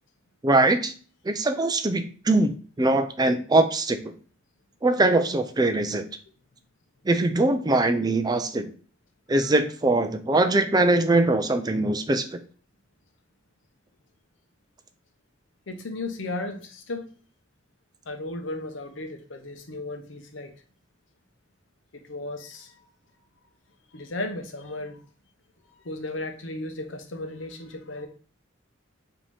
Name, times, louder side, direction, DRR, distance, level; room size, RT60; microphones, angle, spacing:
voice 1, 0.4-0.9 1.2-2.5 2.8-4.1 4.8-6.1 7.1-8.7 9.3-12.4, right 2 dB, 20° right, 8 dB, 0.4 m, -22 dB
voice 2, 15.7-17.0 18.1-20.5 22.1-22.7 23.9-25.0 25.8-28.1, left 2 dB, 75° left, 5 dB, 0.8 m, -35 dB
5.1 x 2.9 x 3.4 m, 0.41 s
head